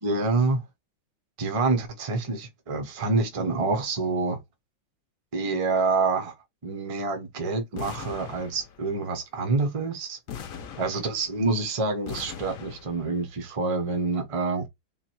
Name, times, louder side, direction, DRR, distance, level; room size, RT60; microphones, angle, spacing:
voice 1, 0.0-0.6 1.4-4.4 5.3-6.3 6.6-10.2 10.8-14.7, right 3 dB, 40° right, 0.5 m, -27 dB
sound 1, 7.8-9.0 10.3-11.5 12.1-13.2, left 8 dB, 65° left, 0.9 m, -40 dB
3.7 x 2.5 x 4.4 m
omnidirectional pair, 2.1 m